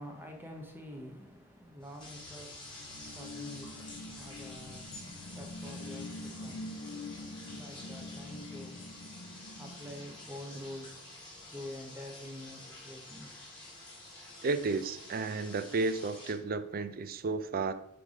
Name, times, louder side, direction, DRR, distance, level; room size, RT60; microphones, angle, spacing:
voice 1, 0.0-9.0 9.6-11.2 11.5-13.6, left 1 dB, 10° right, 0.8 m, -48 dB
sound 1, 1.8-16.3, left 2 dB, 25° left, 2.9 m, -49 dB
sound 2, 1.9-11.0, left 2 dB, 70° left, 0.6 m, -46 dB
voice 2, 14.4-17.7, right 3 dB, 45° right, 0.4 m, -32 dB
9.4 x 3.4 x 4.9 m
head